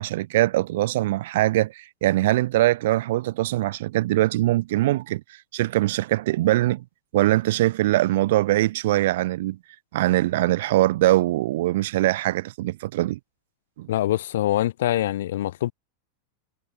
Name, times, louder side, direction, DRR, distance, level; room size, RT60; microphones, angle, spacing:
voice 1, 0.0-5.2 5.5-6.8 7.1-9.6 9.9-13.2 13.8-13.9, right 16 dB, 55° right, 1.7 m, -22 dB
voice 2, 13.9-15.7, left 13 dB, 55° left, 4.5 m, -24 dB
figure-of-eight pair, 90°, 0 cm